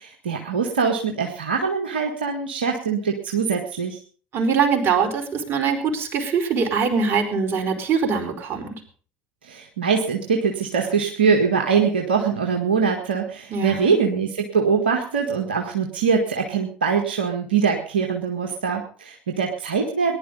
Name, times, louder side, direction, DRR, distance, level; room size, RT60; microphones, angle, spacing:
voice 1, 0.0-4.0 9.4-20.2, right 6 dB, 85° right, 2 dB, 1.8 m, -23 dB
voice 2, 4.3-8.8 13.5-14.0, right 5 dB, 45° right, 5 dB, 4.7 m, -23 dB
19.0 x 11.0 x 5.4 m, 0.42 s
figure-of-eight pair, 60°, 5 cm